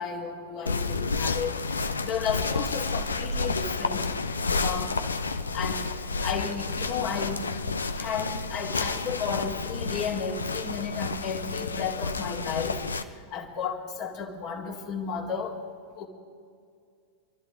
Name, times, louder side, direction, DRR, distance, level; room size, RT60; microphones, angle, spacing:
voice 1, 0.0-1.6 2.0-4.1 4.6-4.9 5.5-5.9 6.2-7.4 8.0-15.6 16.0-16.1, left 6 dB, 40° left, -1 dB, 2.1 m, -33 dB
sound 1, 0.7-13.0, left 4 dB, 75° left, 0.7 m, -30 dB
26.5 x 12.5 x 3.8 m, 2.3 s
figure-of-eight pair, 90°, 0 cm